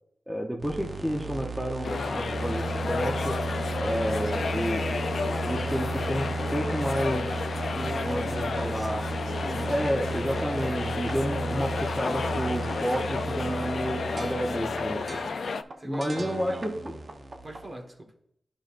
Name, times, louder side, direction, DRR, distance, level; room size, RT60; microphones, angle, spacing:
voice 1, 0.3-3.4 3.8-5.0 5.5-6.3 6.5-7.5 8.1-9.0 9.7-15.2 15.8-17.0, equal, 5° right, 0 dB, 0.8 m, -30 dB
sound 1, 0.6-17.7, right 3 dB, 60° right, 0.8 m, -34 dB
sound 2, 1.8-15.6, left 5 dB, 85° left, 0.3 m, -32 dB
voice 2, 7.7-8.9 9.4-9.8 14.8-15.2 15.8-17.0 17.4-18.1, right 1 dB, 40° right, 2 dB, 1.5 m, -41 dB
11.0 x 5.2 x 2.5 m, 0.71 s
wide cardioid pair, 70°, 0 cm